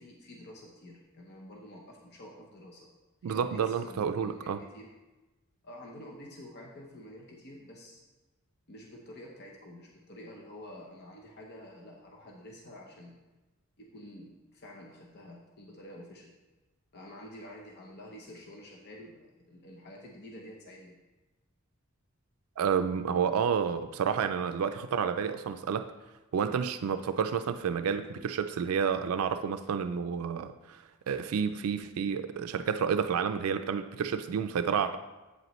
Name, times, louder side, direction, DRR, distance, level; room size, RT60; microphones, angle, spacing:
voice 1, 0.0-2.9 3.2-4.9 5.6-8.0 8.7-13.2 13.8-16.3 16.9-21.0, left 1 dB, 50° left, -1 dB, 0.8 m, -49 dB
voice 2, 3.2-4.6 22.6-25.9 26.3-35.0, right 7 dB, 85° right, 9 dB, 0.4 m, -30 dB
8.0 x 7.8 x 3.1 m, 1.1 s
head